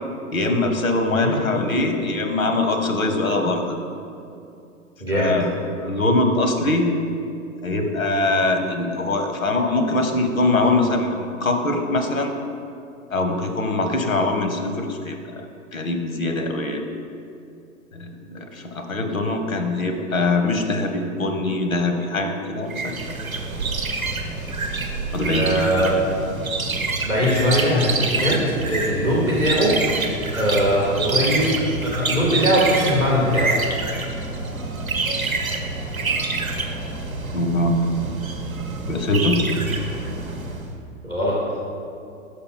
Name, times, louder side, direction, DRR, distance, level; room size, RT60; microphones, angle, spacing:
voice 1, 0.3-3.8 5.1-5.5 5.8-6.9 7.6-12.3 13.1-15.5 15.7-16.8 17.9-23.0 25.1-25.5 37.3-37.8 38.9-39.4, left 2 dB, 80° left, 5 dB, 0.9 m, -22 dB
voice 2, 5.0-5.4 25.2-26.0 27.0-29.8 30.3-31.5 31.8-33.6 41.0-41.4, equal, 5° right, -6 dB, 0.4 m, -21 dB
sound 1, 22.7-40.7, right 3 dB, 90° right, 0.8 m, -27 dB
5.8 x 5.3 x 4.1 m, 2.5 s
figure-of-eight pair, 110°, 40 cm